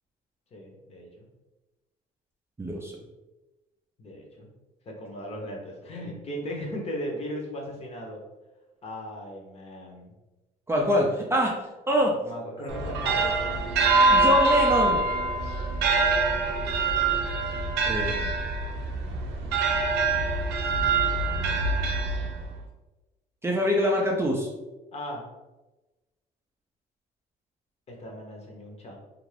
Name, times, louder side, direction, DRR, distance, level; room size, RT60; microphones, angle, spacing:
voice 1, 0.5-1.2 4.0-4.5 4.9-8.2 8.8-10.1 12.1-13.7 20.2-20.3 21.6-21.7 24.9-25.2 27.9-29.0, equal, 40° left, 0 dB, 0.8 m, -37 dB
voice 2, 2.6-2.9 10.7-11.5 11.9-12.1 14.1-15.0 17.9-18.3 23.4-24.5, equal, 15° right, -1 dB, 0.4 m, -24 dB
sound 1, 12.7-22.6, right 3 dB, 85° right, 0.5 m, -24 dB
2.4 x 2.4 x 3.2 m, 1.1 s
cardioid pair, 110°, 17 cm